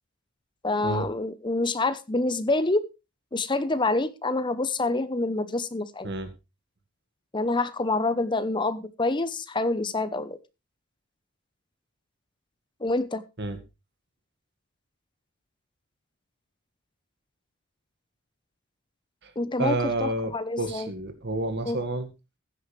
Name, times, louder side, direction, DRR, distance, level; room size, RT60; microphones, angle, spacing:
voice 1, 0.6-2.8 3.3-6.1 7.3-10.4 12.8-13.2 19.4-20.9 21.6-21.8, left 2 dB, 20° left, 13 dB, 0.8 m, -27 dB
voice 2, 19.6-22.1, right 2 dB, 50° right, 8 dB, 1.9 m, -29 dB
15.5 x 9.5 x 3.3 m, 0.27 s
head